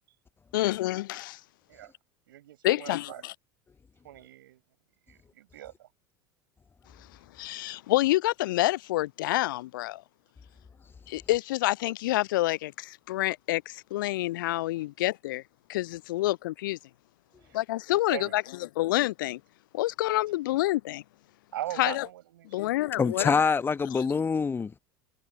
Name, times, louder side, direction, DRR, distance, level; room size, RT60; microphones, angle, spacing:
voice 1, 0.5-1.4 2.6-3.3 7.4-10.0 11.1-15.4 15.7-16.8 17.5-18.4 18.8-19.4 19.7-21.0 21.8-22.1 22.5-23.3 23.9-24.2, left 17 dB, 60° left, 0.4 m, -28 dB
voice 2, 2.3-3.2 4.0-4.6 5.1-5.9 14.8-14.9 17.4-17.6 17.9-18.7 21.5-22.9, right 13 dB, 65° right, 6.8 m, -41 dB
voice 3, 23.0-24.8, left 5 dB, 20° left, 1.0 m, -25 dB
figure-of-eight pair, 75°, 12 cm